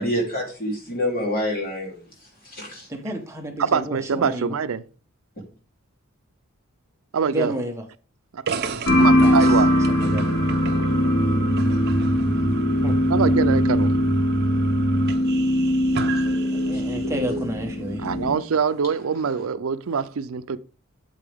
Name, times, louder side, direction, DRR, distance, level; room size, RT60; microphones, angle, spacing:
voice 1, 0.0-1.9 2.4-2.9 16.2-17.4, left 1 dB, 45° left, 3.0 m, -28 dB
voice 2, 2.9-4.5 7.3-7.8 9.2-10.4 12.8-13.0 15.6-15.7 16.0-18.1, right 1 dB, 15° right, 1.2 m, -32 dB
voice 3, 3.6-4.8 7.1-7.5 8.3-8.4 9.0-9.7 13.1-13.9 18.0-20.6, right 6 dB, 75° right, 0.5 m, -24 dB
sound 1, 8.5-17.2, right 3 dB, 50° right, 0.8 m, -28 dB
sound 2, 8.9-18.4, left 1 dB, 75° left, 3.9 m, -21 dB
8.6 x 7.6 x 3.5 m
head